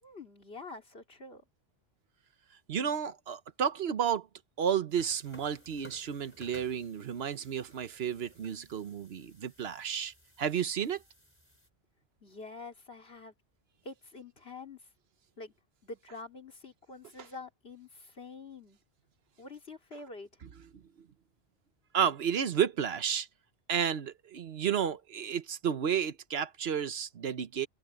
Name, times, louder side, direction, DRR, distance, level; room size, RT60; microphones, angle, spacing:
voice 1, 0.0-1.4 12.2-13.3 13.8-14.9 15.4-15.5 15.8-18.8 19.4-20.4, left 3 dB, 70° left, 3.3 m, -46 dB
voice 2, 2.7-4.3 4.6-11.0 21.9-23.3 23.7-27.7, right 8 dB, 75° right, 1.1 m, -32 dB
sound 1, 4.9-11.7, equal, 10° left, 3.9 m, -58 dB
open air
omnidirectional pair, 1.1 m